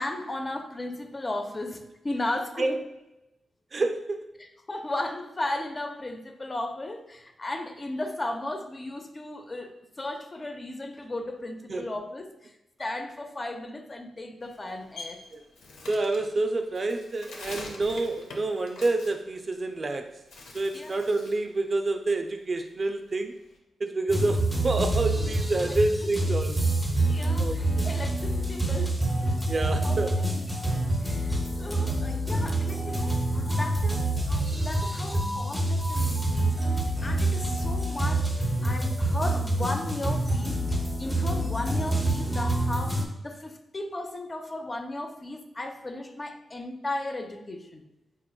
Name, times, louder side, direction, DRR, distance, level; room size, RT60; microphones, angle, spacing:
voice 1, 0.0-2.8 4.7-15.2 20.7-21.0 25.7-25.8 27.0-29.0 29.8-30.6 31.0-38.3 38.6-47.8, left 2 dB, 35° left, 5 dB, 0.5 m, -35 dB
voice 2, 3.7-4.3 11.7-11.9 15.3-15.4 15.9-20.2 20.5-23.4 23.8-26.6 27.4-27.9 29.5-30.2, right 2 dB, 45° right, 6 dB, 0.3 m, -28 dB
Bird, 14.4-19.9 20.2-21.5 21.8-23.6, left 2 dB, 90° left, 0.5 m, -45 dB
sound 1, 24.1-43.1, right 1 dB, ahead, 0.7 m, -27 dB
4.1 x 2.9 x 2.2 m, 0.91 s
cardioid pair, 60°, 0 cm